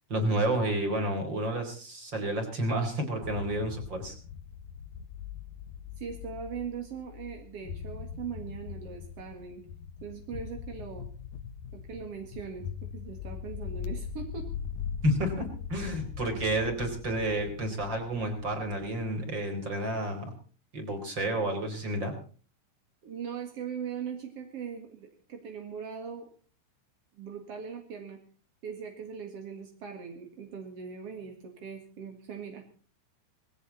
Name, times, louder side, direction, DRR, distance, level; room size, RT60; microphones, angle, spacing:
voice 1, 0.1-4.1 15.0-20.3 20.7-22.1, right 1 dB, 25° right, 5 dB, 4.4 m, -30 dB
sound 1, 3.2-19.3, left 8 dB, 75° left, 1.8 m, -41 dB
voice 2, 6.0-9.6 10.0-11.1 11.7-14.5 23.0-26.3 27.2-28.2 28.6-32.6, right 7 dB, 50° right, 3 dB, 1.8 m, -40 dB
20.0 x 16.5 x 4.2 m, 0.41 s
omnidirectional pair, 5.6 m